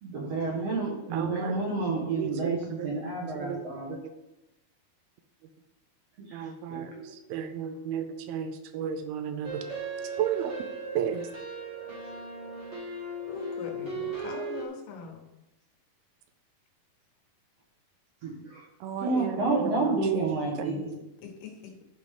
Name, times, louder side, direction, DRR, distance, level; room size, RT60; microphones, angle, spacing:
voice 1, 0.0-4.0 6.2-7.1 18.2-18.6 19.0-20.9, right 3 dB, 60° right, -2 dB, 1.8 m, -30 dB
voice 2, 1.1-1.5 2.2-3.1 3.4-3.6 3.9-4.0 6.3-9.6 10.2-10.5 11.0-11.3 18.8-20.8, right 8 dB, 90° right, 8 dB, 2.6 m, -33 dB
sound 1, 9.4-14.6, right 3 dB, 40° right, 0.8 m, -37 dB
voice 3, 13.3-15.2 21.2-21.7, left 7 dB, 85° left, 2 dB, 3.3 m, -41 dB
12.0 x 5.3 x 3.6 m, 0.91 s
omnidirectional pair, 4.4 m